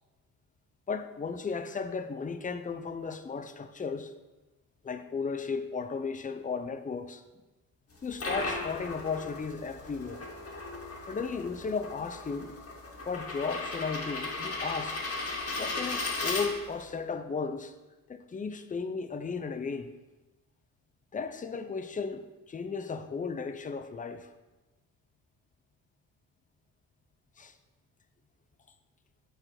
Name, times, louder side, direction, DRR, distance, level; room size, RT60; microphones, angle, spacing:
voice 1, 0.9-4.1 4.8-7.2 8.0-10.2 11.0-12.5 13.1-15.0 15.6-17.7 18.1-19.9 21.1-24.3 27.4-27.5, left 5 dB, 20° left, 0.6 m, -35 dB
sound 1, 7.9-16.9, left 3 dB, 40° left, 2.1 m, -36 dB
7.8 x 4.3 x 5.9 m
cardioid pair, 85°, 35 cm